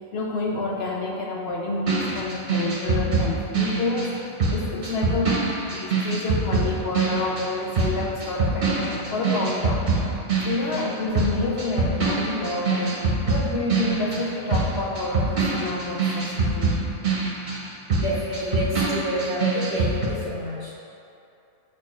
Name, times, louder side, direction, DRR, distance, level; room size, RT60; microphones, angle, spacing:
voice 1, 0.0-4.2 4.5-9.9 10.4-13.0 13.2-16.8, left 2 dB, 60° left, -1 dB, 0.7 m, -28 dB
sound 1, 1.9-10.9 11.1-20.1, right 3 dB, 45° right, 0.9 m, -24 dB
voice 2, 17.9-20.7, equal, 20° left, -8 dB, 0.8 m, -28 dB
7.3 x 4.4 x 3.1 m, 2.7 s
omnidirectional pair, 1.5 m